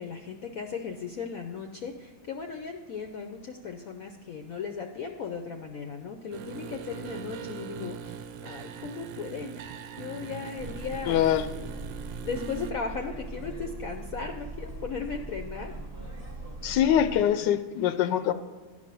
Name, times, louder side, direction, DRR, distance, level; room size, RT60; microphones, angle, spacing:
voice 1, 0.0-9.7 10.0-11.2 12.2-15.7, left 5 dB, 65° left, 4 dB, 0.9 m, -37 dB
sound 1, 6.3-12.7, right 7 dB, 90° right, 1.3 m, -41 dB
sound 2, 10.6-17.2, right 2 dB, 20° right, 1.3 m, -40 dB
voice 2, 11.1-11.4 16.6-18.3, left 10 dB, 80° left, 11 dB, 1.2 m, -23 dB
11.0 x 5.2 x 6.8 m, 1.3 s
omnidirectional pair, 1.9 m